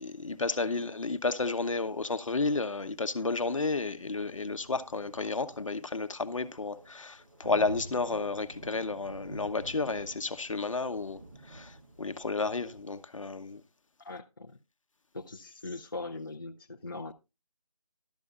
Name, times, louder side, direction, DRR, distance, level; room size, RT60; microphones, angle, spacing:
voice 1, 0.0-11.2 11.5-13.6, left 3 dB, 60° left, 1.0 m, -32 dB
sound 1, 4.1-12.8, right 1 dB, 35° right, 1.4 m, -49 dB
voice 2, 14.0-14.5 15.1-17.1, left 3 dB, 35° left, 0.5 m, -40 dB
12.5 x 12.0 x 2.4 m
figure-of-eight pair, 175°, 19 cm